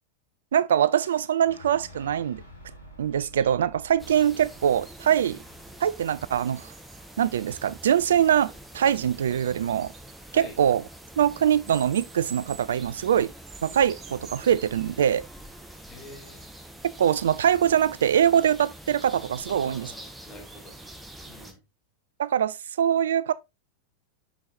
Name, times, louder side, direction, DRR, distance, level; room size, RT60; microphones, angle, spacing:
voice 1, 0.5-2.4 3.0-5.4 5.8-6.7 7.2-9.9 10.3-10.8 11.2-13.3 13.6-15.2 17.0-19.9 22.2-23.3, right 9 dB, 65° right, 0.3 m, -23 dB
Fire / Explosion, 1.0-6.9, equal, 80° left, 1.7 m, -50 dB
sound 1, 3.1-5.4 6.4-7.0 7.8-7.9 8.8-10.2 11.7-15.0 16.0-16.6 19.0-21.0, right 6 dB, 25° right, 1.0 m, -50 dB
sound 2, 4.0-21.5, right 1 dB, 5° right, 1.2 m, -46 dB
voice 2, 10.3-10.6 15.9-16.5 19.5-20.8 21.3-21.6, left 2 dB, 30° left, 2.8 m, -45 dB
6.2 x 6.1 x 2.6 m
figure-of-eight pair, 90°, 0 cm